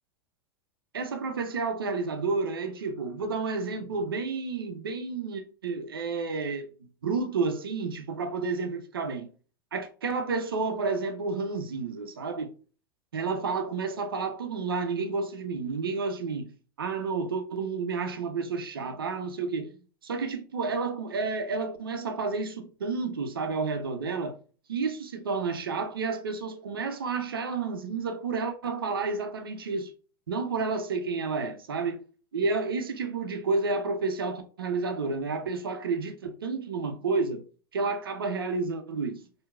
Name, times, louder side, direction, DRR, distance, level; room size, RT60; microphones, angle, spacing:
voice 1, 0.9-6.7 7.0-9.3 9.7-12.5 13.1-16.5 16.8-19.7 20.0-24.4 24.7-29.9 30.3-32.0 32.3-37.4 37.7-39.2, right 4 dB, 85° right, 0.7 m, -30 dB
4.5 x 2.9 x 2.3 m
hypercardioid pair, 100°, 12 cm